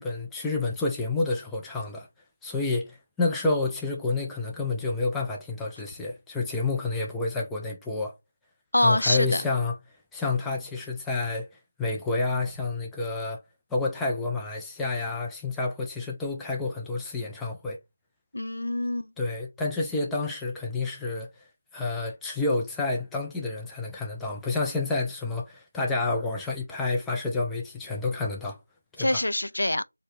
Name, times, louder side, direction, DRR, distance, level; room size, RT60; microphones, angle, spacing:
voice 1, 0.0-2.1 2.4-8.1 8.8-9.8 10.1-11.5 11.8-13.4 13.7-17.8 19.2-21.3 21.7-28.6 29.0-29.2, left 3 dB, 5° left, 0.3 m, -29 dB
voice 2, 8.7-9.4 18.3-19.1 29.0-29.8, left 1 dB, 75° left, 0.4 m, -25 dB
4.3 x 2.1 x 3.1 m
figure-of-eight pair, 170°, 0 cm